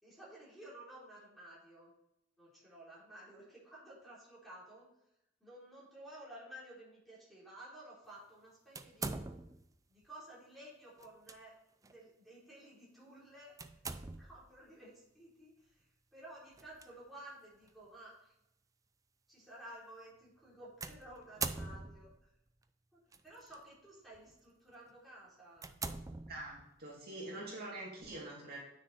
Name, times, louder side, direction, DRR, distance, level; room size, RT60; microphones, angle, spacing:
voice 1, 0.0-1.9 2.4-4.9 5.4-9.2 9.9-11.5 11.8-13.5 14.0-15.9 16.1-18.4 19.3-22.3 22.9-25.7, right 1 dB, ahead, -7 dB, 3.7 m, -54 dB
sound 1, 8.7-9.7 11.0-11.4 11.8-12.0 13.6-14.5 16.5-16.9 17.7-17.8 20.8-22.2 23.1-23.6 24.1-24.3 24.9-25.0 25.6-26.8, right 4 dB, 15° right, 0.4 m, -42 dB
voice 2, 26.1-28.6, right 2 dB, 50° right, -5 dB, 2.6 m, -45 dB
9.6 x 6.4 x 4.2 m, 0.83 s
head